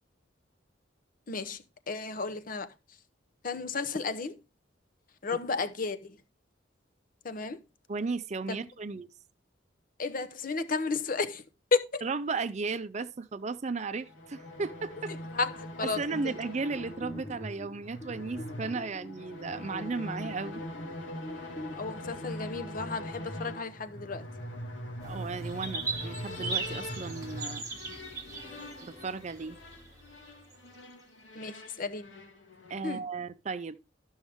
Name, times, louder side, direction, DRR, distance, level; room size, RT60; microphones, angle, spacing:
voice 1, 1.3-2.7 3.4-4.4 5.2-6.2 7.2-7.6 8.5-8.7 10.0-11.4 11.7-12.0 15.3-16.3 21.7-24.3 31.3-32.1 32.8-33.0, left 4 dB, 45° left, 0.8 m, -33 dB
voice 2, 7.9-9.1 12.0-15.1 15.9-20.6 25.0-27.9 28.8-29.6 32.7-33.8, right 4 dB, 35° right, 0.5 m, -35 dB
sound 1, 13.9-33.0, left 1 dB, 90° left, 2.4 m, -42 dB
sound 2, 16.7-21.7, left 1 dB, 10° left, 0.7 m, -45 dB
sound 3, 25.0-30.6, right 4 dB, 20° right, 1.4 m, -39 dB
12.0 x 6.2 x 3.5 m
head